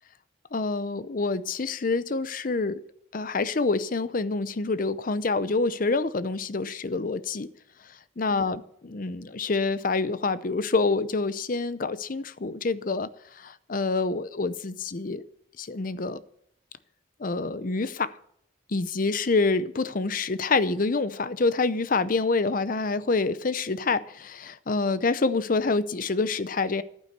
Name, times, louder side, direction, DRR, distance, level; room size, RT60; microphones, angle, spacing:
voice 1, 0.5-2.8 3.1-7.5 8.2-15.2 15.6-16.2 17.2-18.2 18.7-26.8, left 3 dB, 45° left, 14 dB, 0.6 m, -27 dB
11.5 x 9.5 x 6.6 m, 0.70 s
head